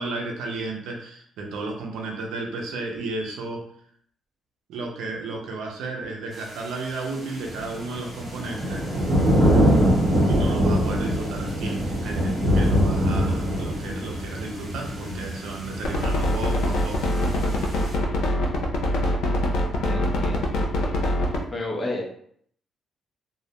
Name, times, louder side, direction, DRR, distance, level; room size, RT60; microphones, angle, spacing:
voice 1, 0.0-3.6 4.7-8.9 10.3-17.2, right 3 dB, 85° right, 1 dB, 0.5 m, -33 dB
sound 1, 7.4-17.9, equal, 45° right, 0.9 m, -24 dB
sound 2, 15.8-21.4, left 1 dB, 80° left, 0.5 m, -23 dB
voice 2, 19.8-20.7 21.5-22.0, left 2 dB, 25° left, -1 dB, 0.7 m, -31 dB
2.3 x 2.0 x 2.8 m, 0.64 s
cardioid pair, 90°, 0 cm